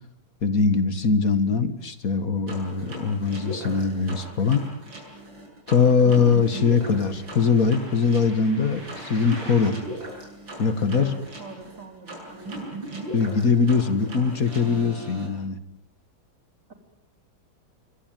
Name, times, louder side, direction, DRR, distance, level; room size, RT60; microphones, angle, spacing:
voice 1, 0.4-4.7 5.7-9.8 10.6-11.1 13.1-15.6, left 5 dB, 40° left, 12 dB, 1.9 m, -22 dB
sound 1, 2.5-15.3, right 1 dB, 55° right, 8.6 m, -38 dB
voice 2, 10.9-12.6, right 4 dB, 35° right, 5 dB, 4.3 m, -43 dB
27.5 x 24.0 x 9.2 m, 0.75 s
omnidirectional pair, 2.4 m